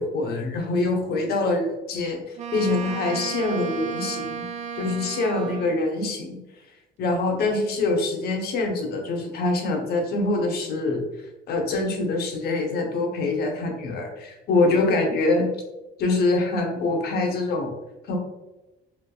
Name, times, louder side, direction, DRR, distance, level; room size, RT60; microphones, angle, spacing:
voice 1, 0.0-4.4 4.7-6.4 7.0-11.0 11.5-15.5 16.0-17.7 18.1-18.2, left 2 dB, 70° left, 2 dB, 0.8 m, -24 dB
Wind instrument woodwind instrument, 2.4-5.9, right 7 dB, 45° right, 0.5 m, -33 dB
3.3 x 2.9 x 2.2 m, 1.0 s
cardioid pair, 110°, 17 cm